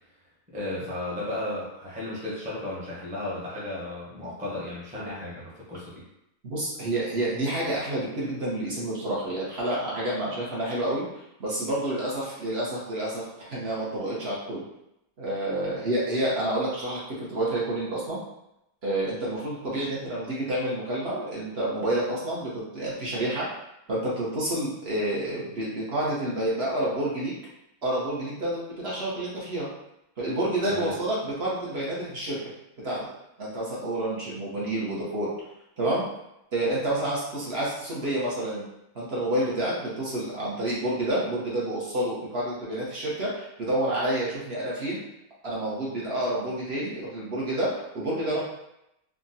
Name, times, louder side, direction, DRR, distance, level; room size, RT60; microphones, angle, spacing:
voice 1, 0.5-6.0 30.7-30.9, left 1 dB, 10° right, -7 dB, 0.5 m, -34 dB
voice 2, 6.4-14.6 15.2-18.2 18.8-23.5 23.9-27.3 27.8-29.7 30.2-32.5 32.8-33.1 33.4-35.3 35.8-36.0 36.5-38.7 38.9-45.0 45.4-48.4, right 1 dB, 50° right, -7 dB, 0.9 m, -29 dB
3.6 x 2.1 x 2.6 m, 0.84 s
omnidirectional pair, 1.5 m